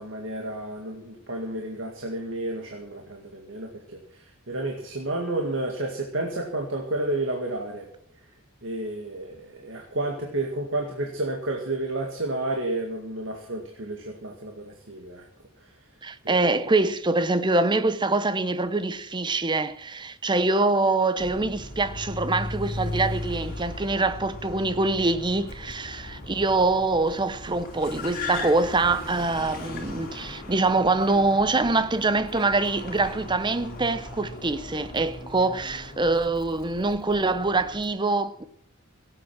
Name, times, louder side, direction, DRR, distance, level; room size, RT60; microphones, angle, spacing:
voice 1, 0.0-7.9 8.6-15.3 16.2-16.5, right 2 dB, 65° right, 2.1 m, -31 dB
voice 2, 16.0-38.4, right 3 dB, 20° right, 0.8 m, -24 dB
Car, 21.2-37.9, left 2 dB, 45° left, 3.2 m, -37 dB
17.0 x 9.0 x 6.1 m
head